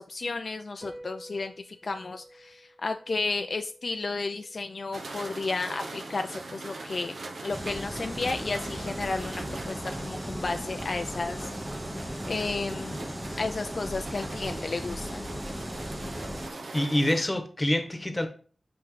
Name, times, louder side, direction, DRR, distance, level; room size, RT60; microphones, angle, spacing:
voice 1, 0.0-7.1 7.4-11.5 11.9-13.0 13.4-15.3, left 3 dB, 65° left, 7 dB, 0.4 m, -33 dB
sound 1, 0.8-7.5, right 1 dB, 40° right, 2.0 m, -52 dB
sound 2, 4.9-17.2, right 2 dB, 80° right, 0.9 m, -40 dB
sound 3, 7.5-16.5, equal, 5° right, 0.7 m, -37 dB
voice 2, 16.7-18.3, left 1 dB, 25° left, 6 dB, 1.1 m, -26 dB
5.7 x 5.2 x 3.2 m, 0.41 s
wide cardioid pair, 60°, 0 cm